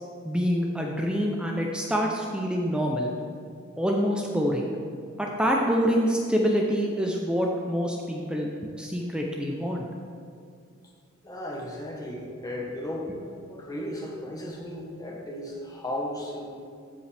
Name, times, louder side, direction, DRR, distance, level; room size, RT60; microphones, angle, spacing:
voice 1, 0.2-3.1 3.8-4.7 5.2-8.5 8.8-9.9, equal, 5° right, 0 dB, 0.5 m, -26 dB
voice 2, 11.2-13.2 13.5-16.5, left 1 dB, 15° left, -2 dB, 1.3 m, -35 dB
14.0 x 5.3 x 3.4 m, 2.3 s
head